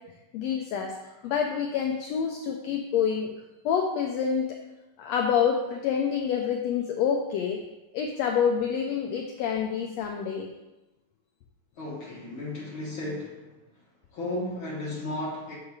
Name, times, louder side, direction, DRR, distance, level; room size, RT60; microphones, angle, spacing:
voice 1, 0.3-3.3 3.6-4.6 5.0-7.6 7.9-10.5, left 7 dB, 85° left, 2 dB, 1.5 m, -27 dB
voice 2, 11.8-13.5 14.1-15.5, left 1 dB, 50° left, -3 dB, 1.6 m, -34 dB
8.3 x 4.8 x 4.7 m, 1.0 s
omnidirectional pair, 3.7 m